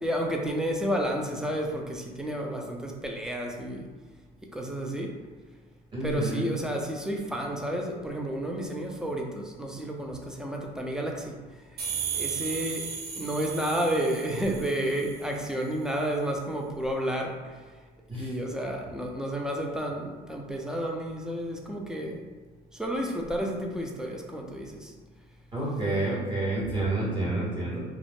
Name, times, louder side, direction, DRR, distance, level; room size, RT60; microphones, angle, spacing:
voice 1, 0.0-3.9 4.5-5.1 6.0-11.4 12.1-12.9 13.2-17.6 18.1-22.2 22.7-24.9, right 1 dB, 5° right, 0 dB, 0.3 m, -31 dB
voice 2, 5.9-6.5 18.1-18.3 25.5-27.8, right 2 dB, 30° right, -7 dB, 1.0 m, -29 dB
sound 1, 11.8-15.4, right 7 dB, 70° right, 0.9 m, -35 dB
2.4 x 2.0 x 3.3 m, 1.4 s
cardioid pair, 110°, 17 cm